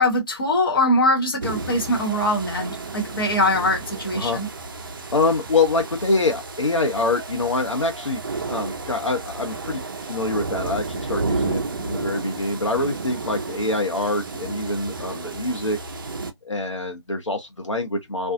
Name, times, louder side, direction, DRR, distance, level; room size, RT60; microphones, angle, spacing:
voice 1, 0.0-4.5, left 1 dB, 50° left, 1.2 m, -22 dB
sound 1, 1.4-16.3, right 3 dB, 45° right, 0.5 m, -32 dB
voice 2, 5.1-8.2 8.5-9.8 10.1-15.8 16.4-18.3, left 3 dB, 85° left, 0.8 m, -25 dB
2.5 x 2.3 x 2.5 m
figure-of-eight pair, 155°, 15 cm